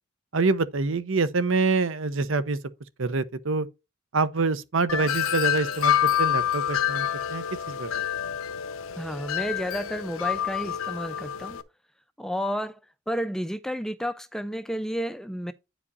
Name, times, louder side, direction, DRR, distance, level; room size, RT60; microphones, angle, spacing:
voice 1, 0.3-2.6 3.0-3.7 4.1-8.3, right 3 dB, 65° right, 0.8 m, -26 dB
Wind chime, 4.9-11.6, left 10 dB, 80° left, 0.8 m, -27 dB
voice 2, 9.0-11.6 12.2-12.8 13.1-15.5, equal, ahead, 0.4 m, -31 dB
9.7 x 5.1 x 4.0 m
head